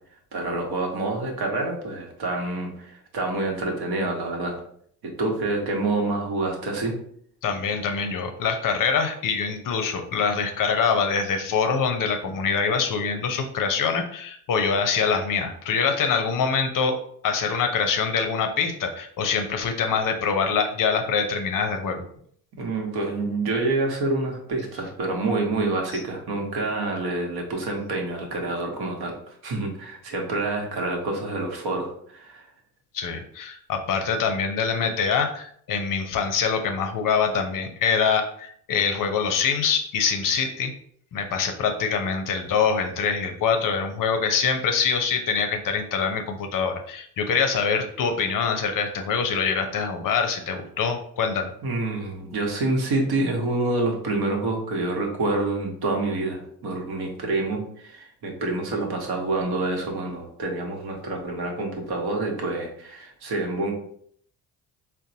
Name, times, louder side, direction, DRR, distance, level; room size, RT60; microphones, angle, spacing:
voice 1, 0.3-4.6 5.2-7.0 22.6-32.5 51.6-63.7, right 2 dB, 55° right, 1 dB, 1.1 m, -27 dB
voice 2, 7.4-16.9 17.2-22.0 32.9-40.7 41.1-51.5, left 6 dB, 45° left, 6 dB, 0.6 m, -24 dB
3.8 x 2.2 x 2.7 m, 0.63 s
hypercardioid pair, 50°, 45 cm